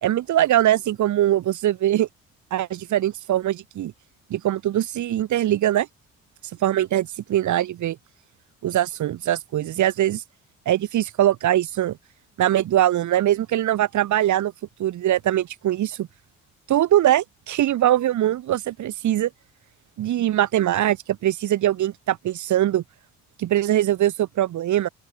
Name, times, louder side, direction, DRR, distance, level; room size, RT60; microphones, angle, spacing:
voice 1, 0.0-2.1 2.5-3.9 4.3-5.9 6.6-8.0 8.6-10.2 10.7-12.0 12.4-14.5 14.8-16.1 16.7-19.3 20.0-22.8 23.4-24.9, right 12 dB, 75° right, 2.2 m, -22 dB
open air
cardioid pair, 90°, 30 cm